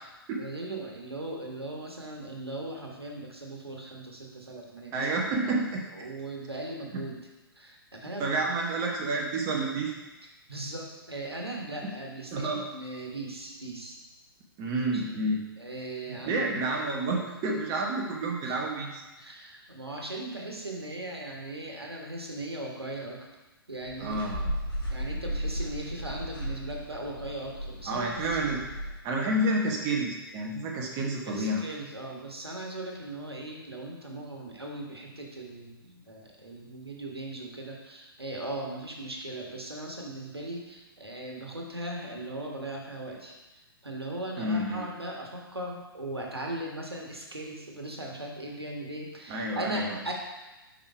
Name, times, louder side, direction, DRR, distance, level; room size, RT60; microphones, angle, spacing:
voice 1, 0.4-4.9 5.4-5.6 5.9-7.2 7.5-8.3 9.1-9.2 10.5-14.0 14.9-15.2 15.6-16.5 18.4-18.6 19.2-23.3 23.7-24.3 24.9-28.4 31.3-43.3 43.8-50.1, right 1 dB, 85° right, -1 dB, 1.4 m, -38 dB
voice 2, 4.9-5.8 8.2-9.9 11.8-11.9 12.3-12.6 14.6-15.4 16.1-19.0 24.0-24.5 27.9-28.6 29.0-31.6 44.4-44.8 49.3-50.0, right 2 dB, 30° right, -1 dB, 1.0 m, -29 dB
sound 1, 23.8-28.9, equal, 60° left, 2.3 m, -35 dB
5.4 x 4.9 x 4.6 m, 1.1 s
figure-of-eight pair, 120°, 13 cm